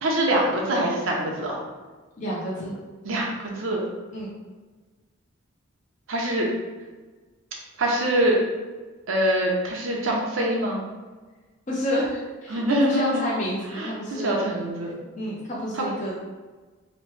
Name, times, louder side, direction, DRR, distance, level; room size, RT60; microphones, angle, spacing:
voice 1, 0.0-1.6 3.0-3.8 6.1-6.5 7.8-8.4 9.1-10.8 12.5-13.2 13.8-13.9 14.2-14.9, right 1 dB, 75° right, -2 dB, 0.6 m, -24 dB
voice 2, 2.2-2.7 4.1-4.3 11.7-14.5 15.2-16.4, equal, 40° left, -6 dB, 0.5 m, -29 dB
3.0 x 2.1 x 3.1 m, 1.3 s
head